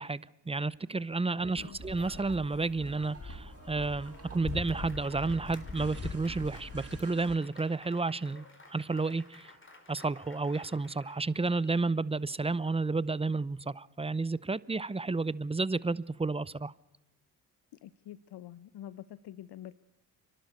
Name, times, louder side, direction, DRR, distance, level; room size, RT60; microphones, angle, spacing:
voice 1, 0.0-8.4 8.7-9.5 9.9-16.7, right 3 dB, 15° right, 20 dB, 0.7 m, -31 dB
sound 1, 1.5-7.0, left 4 dB, 40° left, 2.5 m, -43 dB
sound 2, 1.5-7.4, right 5 dB, 30° right, 2.2 m, -49 dB
Applause, 3.2-11.9, left 2 dB, 25° left, 4.4 m, -56 dB
voice 2, 17.8-19.7, left 12 dB, 60° left, 16 dB, 0.8 m, -46 dB
30.0 x 11.5 x 8.2 m, 0.97 s
supercardioid pair, 55°, 45 cm